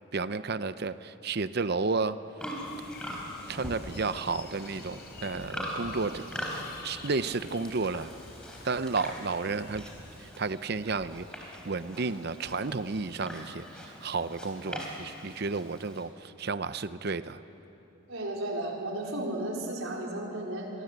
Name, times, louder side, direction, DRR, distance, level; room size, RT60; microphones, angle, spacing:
voice 1, 0.1-2.2 3.5-6.2 6.8-8.1 8.6-9.8 10.4-11.2 11.7-17.4, right 4 dB, 50° right, 13 dB, 0.7 m, -32 dB
Livestock farm animals working animals, 2.4-16.0, equal, 5° left, 3.6 m, -42 dB
sound 1, 2.6-10.3, left 3 dB, 50° left, 4.7 m, -49 dB
voice 2, 18.1-20.7, right 1 dB, 80° right, -1 dB, 4.6 m, -34 dB
26.5 x 23.0 x 8.2 m, 3.0 s
head